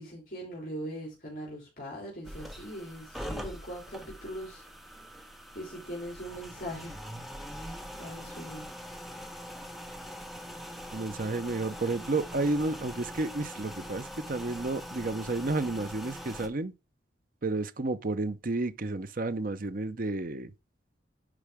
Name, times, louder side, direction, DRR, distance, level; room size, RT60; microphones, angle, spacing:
voice 1, 0.0-4.6 5.5-7.0 7.9-8.7, equal, 50° left, 3.4 m, -40 dB
sound 1, 2.2-16.5, equal, ahead, 1.0 m, -43 dB
voice 2, 10.9-16.7 17.4-20.5, right 2 dB, 50° right, 0.7 m, -31 dB
10.0 x 4.7 x 3.5 m
head